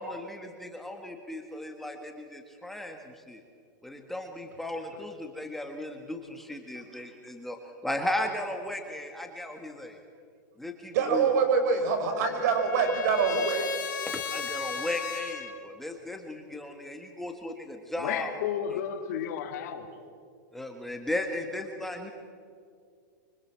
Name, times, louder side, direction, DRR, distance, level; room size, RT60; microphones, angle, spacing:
voice 1, 0.0-3.0 3.3-3.4 3.8-7.6 7.8-10.0 10.6-11.2 14.1-18.3 20.5-22.1, left 1 dB, ahead, 3 dB, 1.6 m, -36 dB
voice 2, 10.9-13.8, right 5 dB, 60° right, 5 dB, 5.9 m, -25 dB
Trumpet, 11.7-15.5, left 7 dB, 90° left, 4.0 m, -36 dB
voice 3, 18.0-19.9, left 9 dB, 60° left, 5 dB, 2.8 m, -32 dB
25.5 x 25.0 x 7.5 m, 2.2 s
supercardioid pair, 155°, 10 cm